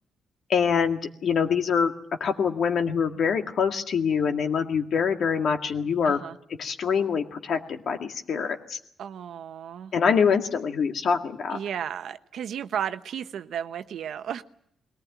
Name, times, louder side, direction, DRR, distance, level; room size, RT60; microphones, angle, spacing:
voice 1, 0.5-1.9 2.2-6.2 6.6-8.8 9.9-11.6, left 6 dB, 65° left, 1.9 m, -25 dB
voice 2, 6.0-6.4 9.0-9.9 11.5-14.4, right 9 dB, 75° right, 0.9 m, -33 dB
21.5 x 18.5 x 9.3 m
cardioid pair, 110°, 0 cm